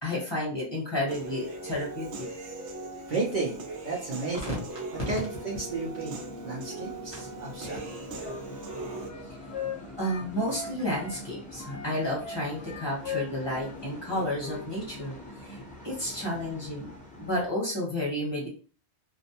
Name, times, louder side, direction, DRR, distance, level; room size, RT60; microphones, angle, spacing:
voice 1, 0.0-2.3 4.4-4.5 10.0-15.1 15.4-15.5 15.8-16.9 17.2-18.5, left 1 dB, 25° left, -4 dB, 1.0 m, -31 dB
Human voice / Piano, 1.1-9.1, right 2 dB, 80° right, 0.9 m, -40 dB
sound 1, 1.2-17.5, left 1 dB, 10° left, 0.6 m, -46 dB
voice 2, 3.1-4.7 5.1-6.2 6.4-7.8, right 3 dB, 55° right, -3 dB, 0.7 m, -33 dB
Wind instrument woodwind instrument, 7.8-11.2 11.6-14.7 15.0-15.2, left 8 dB, 70° left, 0.8 m, -40 dB
2.4 x 2.1 x 2.8 m, 0.37 s
omnidirectional pair, 1.1 m